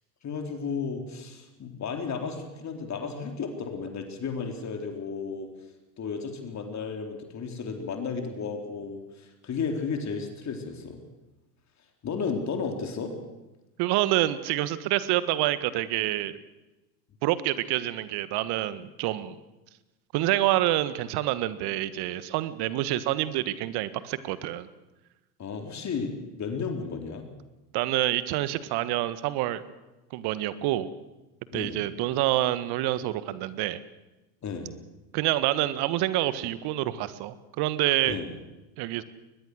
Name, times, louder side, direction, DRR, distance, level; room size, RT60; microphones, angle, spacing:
voice 1, 0.2-5.5 6.0-11.0 12.0-13.1 25.4-26.1 26.4-27.3 31.5-31.8 34.4-34.7 38.1-38.3, left 5 dB, 35° left, 4 dB, 4.1 m, -33 dB
voice 2, 13.8-16.4 17.2-19.4 20.1-24.7 27.7-29.6 30.1-30.9 31.5-33.8 35.1-38.2 38.8-39.0, right 15 dB, 50° right, 14 dB, 1.6 m, -27 dB
23.0 x 20.5 x 6.5 m, 1.0 s
hypercardioid pair, 80°, 50 cm